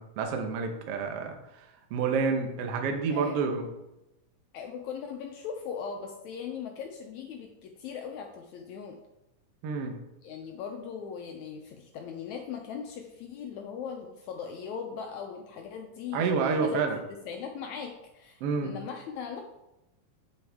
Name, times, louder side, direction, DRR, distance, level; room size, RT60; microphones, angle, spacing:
voice 1, 0.0-1.3 1.9-3.7 9.6-10.0 16.1-17.0 18.4-18.7, right 5 dB, 70° right, 4 dB, 1.4 m, -28 dB
voice 2, 3.1-3.4 4.5-9.0 10.2-16.8 17.2-19.4, left 7 dB, 85° left, 2 dB, 1.6 m, -39 dB
8.1 x 7.8 x 3.5 m, 0.92 s
omnidirectional pair, 4.1 m